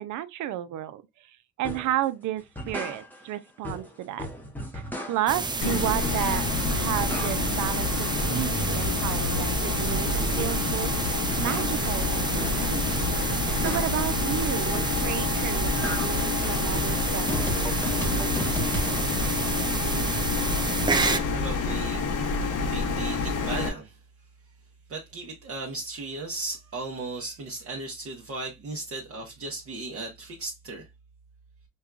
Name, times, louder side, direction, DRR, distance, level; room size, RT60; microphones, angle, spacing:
voice 1, 0.0-4.3 4.7-11.0 11.4-12.9 13.6-17.6, right 12 dB, 80° right, 0.5 m, -32 dB
sound 1, 1.6-2.0 2.4-3.4 3.6-5.4 5.8-6.5 6.8-7.7 8.0-10.7 11.1-14.1 14.6-15.2 15.5-19.1, equal, 5° left, 0.8 m, -36 dB
sound 2, 5.3-21.2, right 4 dB, 15° right, 0.4 m, -30 dB
sound 3, 5.6-23.7, left 4 dB, 85° left, 0.9 m, -28 dB
voice 2, 20.9-22.1 22.7-24.0 24.9-30.9, right 3 dB, 50° right, 0.9 m, -36 dB
5.3 x 2.3 x 2.3 m
cardioid pair, 90°, 30 cm